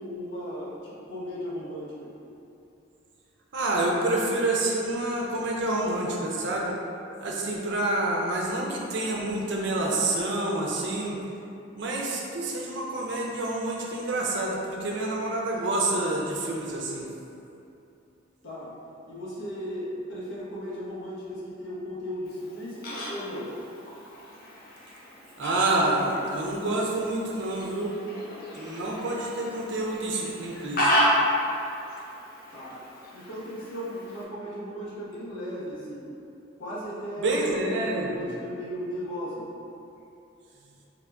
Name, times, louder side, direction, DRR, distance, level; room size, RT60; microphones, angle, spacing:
voice 1, 0.0-2.1 18.4-18.7 19.1-23.5 32.5-32.8 33.1-36.1 36.6-39.5, equal, 85° left, -7 dB, 1.0 m, -36 dB
voice 2, 3.5-6.7 7.2-11.2 11.8-17.1 25.4-28.0 28.5-30.9 37.2-38.3, right 2 dB, 65° right, -2 dB, 0.5 m, -28 dB
Fowl, 22.3-34.2, equal, 50° left, 0.6 m, -32 dB
3.5 x 2.5 x 3.3 m, 2.7 s
head